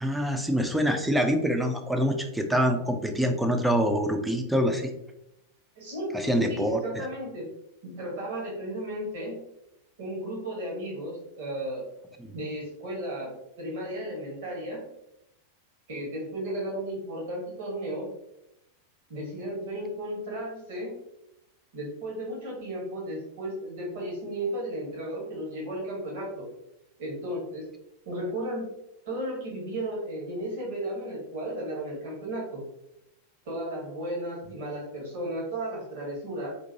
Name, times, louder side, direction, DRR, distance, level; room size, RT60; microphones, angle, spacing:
voice 1, 0.0-4.9 6.1-6.8, equal, 5° right, 5 dB, 0.4 m, -25 dB
voice 2, 5.8-7.5 7.8-9.4 10.0-11.9 12.3-14.9 15.9-18.1 19.1-21.0 21.7-26.5 27.0-27.7 28.0-28.7 29.1-32.6 33.4-36.5, right 1 dB, 55° right, -3 dB, 1.2 m, -34 dB
3.8 x 2.5 x 2.7 m, 0.86 s
figure-of-eight pair, 90°, 0 cm